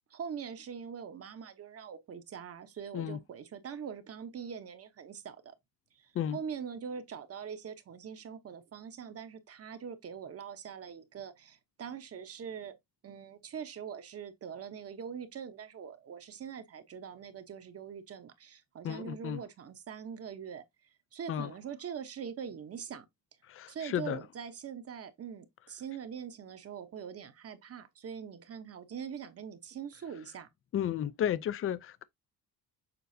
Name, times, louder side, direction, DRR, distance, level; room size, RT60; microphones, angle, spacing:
voice 1, 0.1-5.5 5.9-12.8 13.0-23.0 23.7-30.5, right 7 dB, 40° right, 1.0 m, -43 dB
voice 2, 18.8-19.4 21.3-21.5 23.5-24.2 30.7-32.0, left 10 dB, 40° left, 0.5 m, -33 dB
6.9 x 5.1 x 2.7 m
cardioid pair, 160°, 35 cm